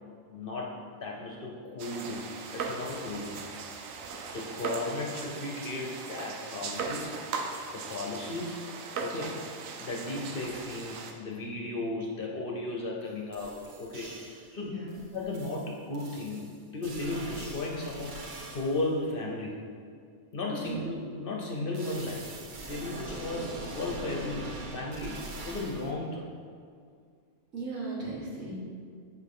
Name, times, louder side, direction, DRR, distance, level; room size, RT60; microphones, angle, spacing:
voice 1, 0.3-2.3 2.5-3.4 4.3-7.2 7.7-8.6 9.0-9.4 9.8-14.8 15.1-19.6 20.3-26.3, left 2 dB, 50° left, -1 dB, 0.8 m, -35 dB
sound 1, 1.8-11.1, right 4 dB, 90° right, 1.0 m, -38 dB
sound 2, 13.0-13.1 13.3-14.5 14.9-18.9 21.7-25.9, right 2 dB, 50° right, 0.7 m, -43 dB
voice 2, 14.6-15.0 20.6-20.9 27.5-28.6, right 2 dB, 70° right, -6 dB, 1.9 m, -37 dB
8.6 x 4.3 x 3.6 m, 2.2 s
omnidirectional pair, 1.3 m